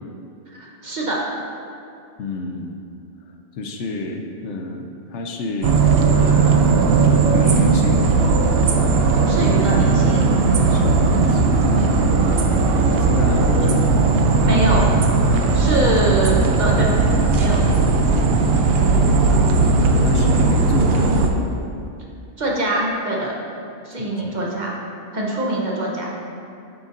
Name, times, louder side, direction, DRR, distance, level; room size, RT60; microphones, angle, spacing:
voice 1, 0.6-1.2 9.2-10.3 14.4-14.9 15.5-16.9 17.4-17.7 22.4-23.3 23.8-24.8 25.1-26.1, right 1 dB, 40° right, -3 dB, 1.0 m, -23 dB
voice 2, 2.2-2.7 3.6-6.7 7.3-8.1 10.7-12.1 12.9-13.9 15.8-16.1 19.3-19.8 20.0-21.3 24.0-24.3, left 2 dB, 75° left, 3 dB, 0.9 m, -29 dB
sound 1, 5.6-21.3, right 4 dB, 60° right, 0.8 m, -17 dB
8.5 x 6.8 x 2.5 m, 2.5 s
omnidirectional pair, 1.2 m